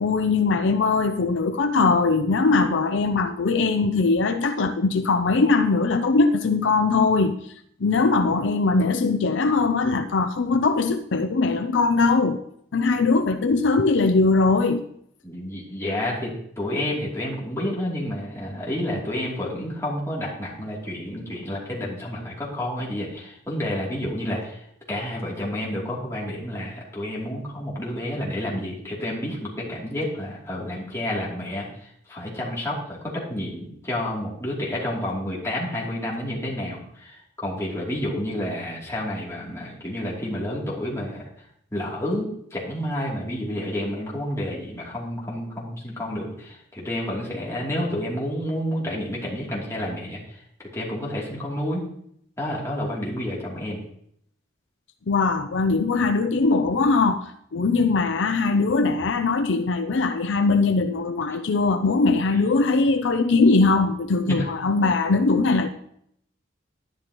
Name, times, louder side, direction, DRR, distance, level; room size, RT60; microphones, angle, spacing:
voice 1, 0.0-7.4 7.8-12.4 12.7-14.8 55.1-65.7, left 3 dB, 70° left, 7 dB, 0.5 m, -21 dB
voice 2, 15.2-41.2 41.7-51.8 52.4-53.8 57.7-57.9 62.3-62.4 64.3-64.5, left 1 dB, 15° left, -5 dB, 2.9 m, -30 dB
11.5 x 10.5 x 3.0 m, 0.70 s
head